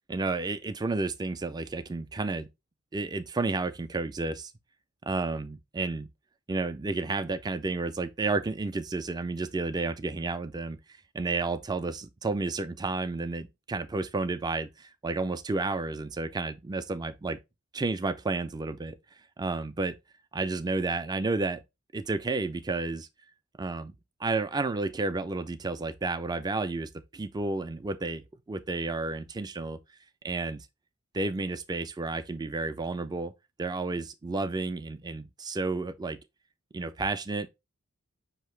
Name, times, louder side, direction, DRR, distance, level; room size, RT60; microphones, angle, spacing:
voice 1, 0.1-2.5 2.9-4.5 5.1-6.1 6.5-10.8 11.1-17.4 17.7-19.0 19.4-19.9 20.3-21.6 21.9-23.1 23.6-29.8 30.2-30.7 31.1-33.3 33.6-36.2 36.7-37.5, right 3 dB, 20° right, 0.4 m, -31 dB
5.6 x 2.8 x 3.2 m
head